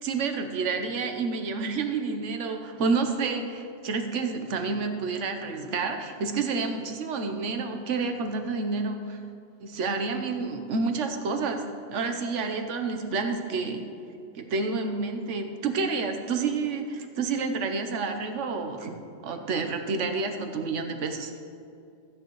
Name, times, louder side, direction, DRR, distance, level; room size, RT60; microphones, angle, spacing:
voice 1, 0.0-9.2 9.6-13.8 14.3-19.0 19.2-21.3, right 4 dB, 75° right, 5 dB, 1.2 m, -29 dB
14.0 x 9.4 x 3.1 m, 2.5 s
omnidirectional pair, 1.3 m